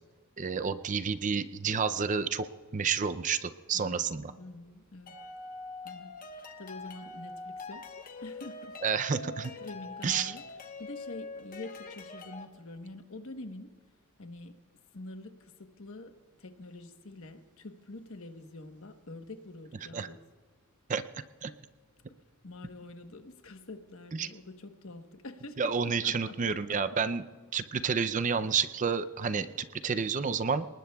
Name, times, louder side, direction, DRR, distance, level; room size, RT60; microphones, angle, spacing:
voice 1, 0.4-2.5 2.7-4.3 8.8-9.5 10.0-10.3 19.9-20.1 20.9-21.0 21.4-21.5 24.1-24.3 25.6-27.2 27.5-30.7, right 6 dB, 35° right, 12 dB, 0.5 m, -30 dB
voice 2, 3.7-4.0 4.4-5.2 5.8-8.8 9.2-9.3 9.6-10.4 10.8-13.8 14.2-14.6 14.9-20.2 22.0-26.8, left 2 dB, 65° left, 7 dB, 1.1 m, -46 dB
sound 1, 5.1-12.4, left 3 dB, 40° left, 1.1 m, -44 dB
28.5 x 19.5 x 2.3 m, 1.5 s
head